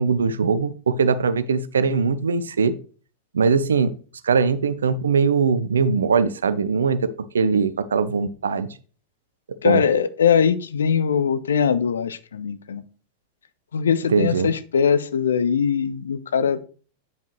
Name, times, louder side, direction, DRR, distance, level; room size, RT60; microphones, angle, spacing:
voice 1, 0.0-2.7 3.3-3.9 4.2-7.1 7.3-8.7 9.6-9.8 14.1-14.5, right 5 dB, 70° right, 13 dB, 0.5 m, -21 dB
voice 2, 9.6-12.8 13.7-16.6, left 7 dB, 65° left, 14 dB, 0.5 m, -21 dB
9.1 x 5.4 x 3.1 m, 0.40 s
figure-of-eight pair, 90°, 0 cm